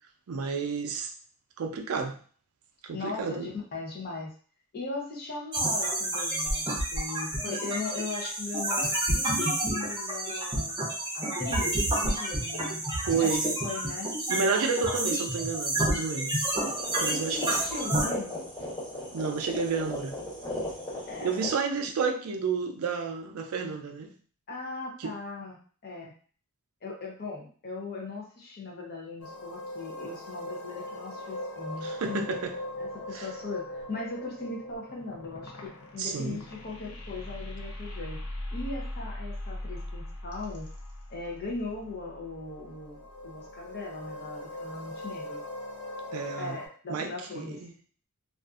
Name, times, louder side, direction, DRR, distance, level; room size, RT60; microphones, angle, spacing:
voice 1, 0.3-1.1 1.6-2.2 2.8-3.5 13.1-13.4 14.3-16.3 17.0-17.4 19.1-20.1 21.2-24.1 25.0-25.1 31.8-32.5 33.1-33.3 36.0-36.4 46.1-46.6 46.9-47.7, right 5 dB, 75° right, 5 dB, 0.4 m, -30 dB
voice 2, 2.9-4.3 4.7-10.8 11.1-12.8 13.2-14.1 16.9-18.4 21.1-21.4 24.5-25.6 25.8-26.1 26.8-32.3 32.8-38.2 38.5-40.7 41.1-45.4 46.4-47.6, left 3 dB, 45° left, -1 dB, 0.6 m, -38 dB
sound 1, 5.5-18.1, right 1 dB, 20° right, 0.6 m, -29 dB
sound 2, 16.5-21.5, left 1 dB, 20° left, 1.3 m, -37 dB
sound 3, 29.2-46.7, left 1 dB, 90° left, 0.6 m, -40 dB
2.5 x 2.4 x 2.4 m, 0.43 s
head